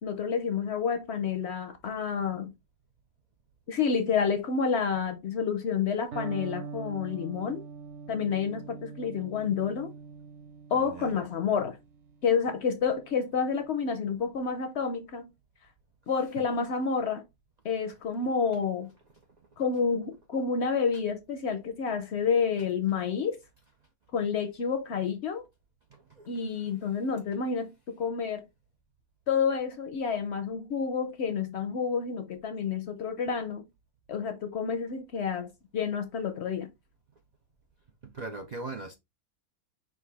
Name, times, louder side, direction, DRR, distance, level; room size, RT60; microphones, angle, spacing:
voice 1, 0.0-2.5 3.7-7.6 8.1-9.9 10.7-11.8 12.2-15.3 16.1-17.2 17.6-18.9 19.6-23.4 24.1-25.4 26.3-28.4 29.3-33.6 34.1-36.7, left 6 dB, 60° left, 0.7 m, -29 dB
Electric guitar, 6.1-14.0, right 5 dB, 55° right, 1.0 m, -44 dB
voice 2, 10.8-11.2 16.4-16.5 25.9-26.6 38.0-38.9, right 3 dB, 80° right, 0.3 m, -41 dB
5.7 x 2.5 x 3.3 m
omnidirectional pair, 1.6 m